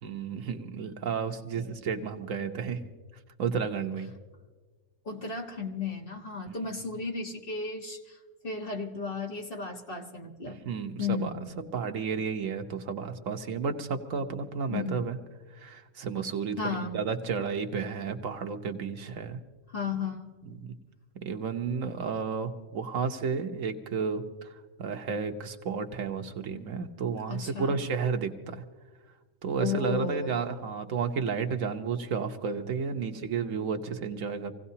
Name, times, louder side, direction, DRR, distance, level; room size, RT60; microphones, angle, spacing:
voice 1, 0.0-2.8 3.4-4.1 6.5-6.6 10.5-11.3 11.7-15.2 15.5-19.4 20.5-20.7 21.2-24.5 24.8-28.6 29.4-34.5, right 5 dB, 75° right, 6 dB, 1.3 m, -32 dB
voice 2, 5.0-8.2 8.4-10.6 11.0-11.5 14.7-15.0 16.6-17.0 19.7-20.4 27.3-27.8 29.6-30.4, left 4 dB, 45° left, 0 dB, 1.6 m, -34 dB
26.0 x 16.5 x 2.8 m, 1.4 s
omnidirectional pair, 1.4 m